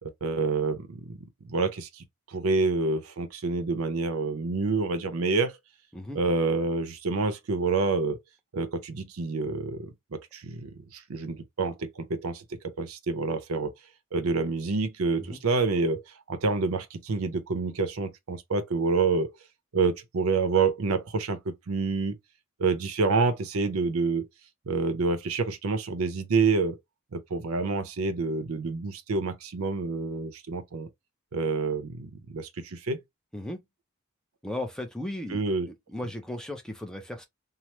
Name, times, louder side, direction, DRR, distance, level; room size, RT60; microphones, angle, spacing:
voice 1, 0.0-5.5 6.1-8.2 8.5-13.7 14.1-19.3 19.7-22.2 22.6-24.3 24.7-26.8 27.1-30.9 31.3-33.0 35.3-35.7, right 4 dB, 80° right, 0.6 m, -28 dB
voice 2, 34.4-37.3, left 1 dB, 5° left, 0.4 m, -36 dB
3.2 x 2.0 x 2.9 m
head